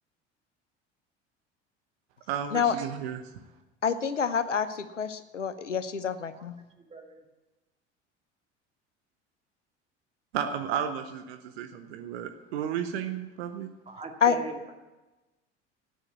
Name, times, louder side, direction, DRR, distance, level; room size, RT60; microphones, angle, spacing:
voice 1, 2.3-3.3 10.3-13.7, right 8 dB, 60° right, 6 dB, 1.2 m, -33 dB
voice 2, 3.8-6.5 14.2-14.3, left 7 dB, 85° left, 12 dB, 0.9 m, -27 dB
voice 3, 6.8-7.2 13.9-14.7, right 4 dB, 15° right, 2 dB, 2.1 m, -40 dB
14.0 x 9.5 x 8.4 m, 1.1 s
figure-of-eight pair, 65°, 36 cm